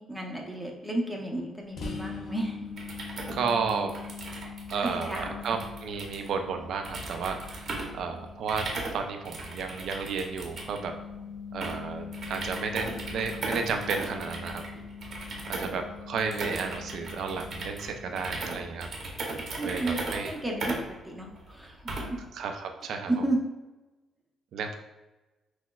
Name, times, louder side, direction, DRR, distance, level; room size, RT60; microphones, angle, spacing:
voice 1, 0.0-2.7 4.8-5.6 11.2-11.3 15.5-15.7 19.6-22.2 23.1-23.4, right 1 dB, 5° right, -1 dB, 0.8 m, -33 dB
sound 1, 1.8-19.3, left 5 dB, 60° left, 0.6 m, -43 dB
sound 2, 2.7-22.3, right 2 dB, 55° right, 0.9 m, -38 dB
voice 2, 3.3-3.9 4.7-10.9 11.5-14.6 15.5-18.9 19.6-20.3 22.3-23.1 24.5-24.7, right 5 dB, 70° right, 5 dB, 0.4 m, -32 dB
5.8 x 2.1 x 2.3 m, 1.1 s
cardioid pair, 90°, 0 cm